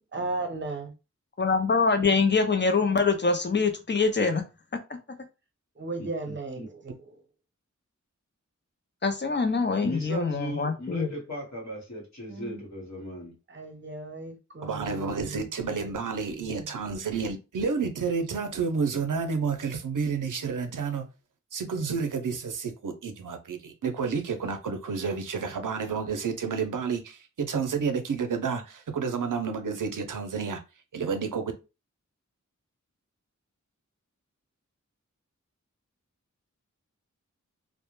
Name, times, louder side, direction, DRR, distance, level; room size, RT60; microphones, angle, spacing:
voice 1, 0.1-0.9 5.8-7.1 12.3-12.6 13.5-15.8 16.4-16.7, right 3 dB, 40° right, 0.6 m, -36 dB
voice 2, 1.4-4.4 9.0-11.1, left 4 dB, 35° left, 0.5 m, -24 dB
voice 3, 6.0-6.7 9.8-13.4, equal, 65° left, 1.0 m, -37 dB
voice 4, 14.6-21.1 21.5-30.6 30.9-31.5, right 5 dB, 85° right, 0.5 m, -30 dB
2.1 x 2.0 x 3.0 m
wide cardioid pair, 50°, 31 cm